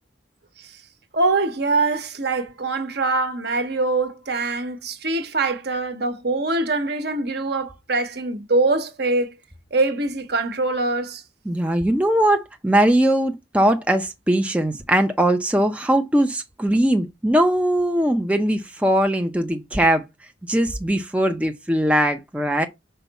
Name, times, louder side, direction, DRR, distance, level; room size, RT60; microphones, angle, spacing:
voice 1, 1.1-9.3 9.7-11.2, right 3 dB, 55° right, 1.0 m, -23 dB
voice 2, 11.5-20.0 20.5-22.7, right 1 dB, 5° right, 0.5 m, -20 dB
5.6 x 4.5 x 4.1 m
head